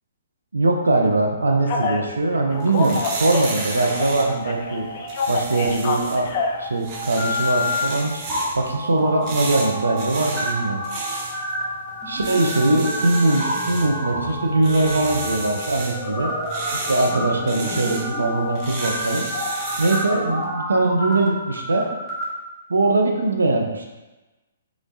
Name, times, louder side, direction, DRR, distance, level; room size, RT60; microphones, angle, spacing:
voice 1, 0.5-4.9 5.3-6.3 6.6-8.2 8.6-10.8 12.1-16.3 16.7-19.3 19.8-21.9 22.7-23.9, right 2 dB, 85° right, 2 dB, 0.5 m, -21 dB
Telephone, 1.7-2.0 2.5-4.2 4.4-6.6 7.2-7.9, left 5 dB, 45° left, 0.4 m, -26 dB
sound 1, 2.5-20.1, right 2 dB, 40° right, 0.7 m, -34 dB
sound 2, 3.7-5.1 5.4-5.7 6.2-22.2, equal, 10° right, 0.9 m, -30 dB
3.1 x 3.0 x 2.6 m, 1.1 s
hypercardioid pair, 130°, 0 cm